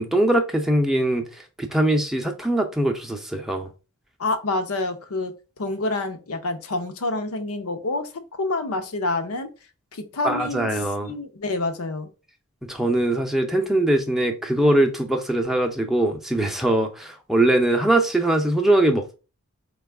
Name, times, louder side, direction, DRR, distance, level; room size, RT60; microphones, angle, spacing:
voice 1, 0.0-3.7 10.2-11.1 12.6-19.1, right 1 dB, ahead, 0.5 m, -22 dB
voice 2, 4.2-9.5 9.9-10.7 11.0-12.1, left 2 dB, 90° left, 0.7 m, -27 dB
4.4 x 2.3 x 3.3 m
head